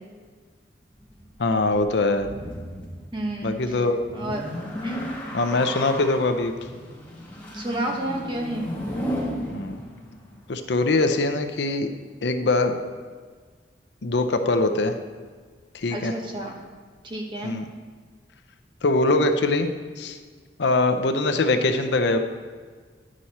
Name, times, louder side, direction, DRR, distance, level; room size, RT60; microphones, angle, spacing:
sound 1, 1.0-10.6, equal, 10° left, 1.4 m, -35 dB
voice 1, 1.4-2.3 3.4-4.0 5.3-6.5 9.5-9.8 10.5-11.9 12.2-12.8 14.0-15.0 15.7-16.1 17.4-17.7 18.8-19.7 20.0-20.2 20.6-22.2, left 2 dB, 70° left, 7 dB, 0.6 m, -22 dB
voice 2, 3.1-3.6 4.1-4.5 4.8-5.0 7.5-8.7 15.9-16.6 17.0-17.6, right 1 dB, 25° right, 0 dB, 1.1 m, -30 dB
10.0 x 6.3 x 4.2 m, 1.5 s
head